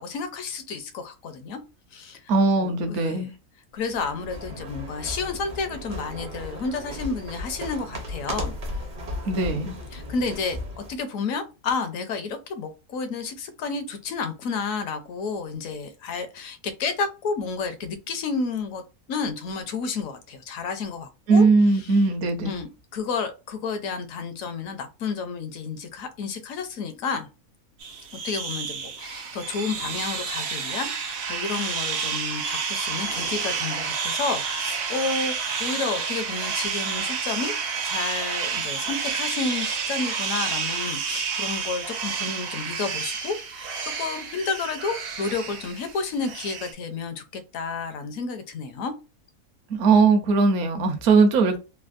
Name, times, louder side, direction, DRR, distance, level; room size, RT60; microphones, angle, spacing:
voice 1, 0.0-1.6 1.9-3.3 3.7-8.6 9.5-18.8 19.1-21.5 21.7-22.1 22.4-27.3 28.2-35.3 35.6-48.9, left 4 dB, 70° left, 0.9 m, -31 dB
voice 2, 2.3-3.3 9.2-9.7 21.3-22.6 49.7-51.6, right 4 dB, 65° right, 1.0 m, -19 dB
sound 1, 3.9-11.0, left 1 dB, 45° right, 0.6 m, -35 dB
sound 2, 27.8-46.7, right 6 dB, 85° right, 1.3 m, -30 dB
3.4 x 2.2 x 2.4 m
omnidirectional pair, 1.6 m